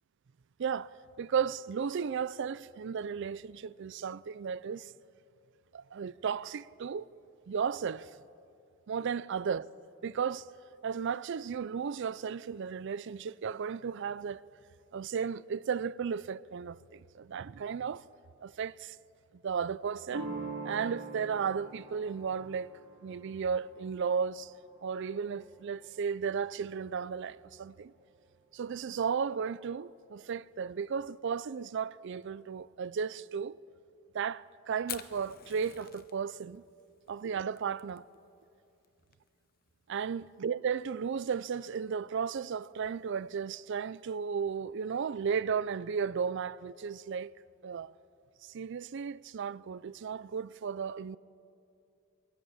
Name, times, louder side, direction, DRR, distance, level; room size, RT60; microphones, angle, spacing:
voice 1, 0.6-0.9 1.2-4.9 5.7-7.1 7.5-8.1 8.9-9.7 10.0-10.5 10.8-14.4 14.9-18.0 18.4-19.0 19.4-20.3 20.6-22.7 23.0-24.5 24.8-27.9 28.5-33.6 34.1-36.6 37.1-38.0 39.9-47.3 47.6-47.9 48.4-51.2, right 6 dB, 60° right, 0.4 m, -34 dB
sound 1, 20.1-25.7, right 3 dB, 80° right, 5.0 m, -44 dB
Fire, 34.8-44.6, left 11 dB, 45° left, 0.8 m, -51 dB
21.0 x 16.5 x 8.7 m
head